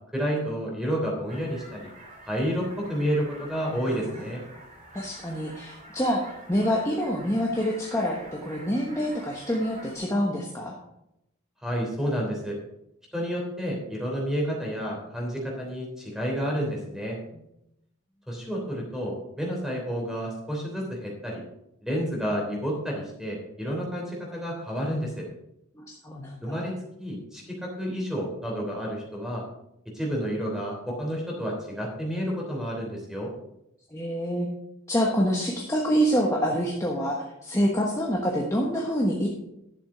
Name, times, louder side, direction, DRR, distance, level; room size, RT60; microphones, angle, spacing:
voice 1, 0.1-1.9 2.3-4.4 11.6-12.6 13.1-17.2 18.3-21.4 21.8-25.2 26.4-26.7 27.0-29.4 29.9-33.3, equal, ahead, -2 dB, 3.1 m, -30 dB
sound 1, 1.3-10.0, right 1 dB, 35° right, 2.9 m, -47 dB
voice 2, 3.8-4.4 4.9-6.2 6.5-10.8 25.7-26.6 33.9-34.5 34.9-39.3, equal, 15° left, -2 dB, 1.2 m, -26 dB
11.5 x 7.2 x 4.8 m, 0.84 s
head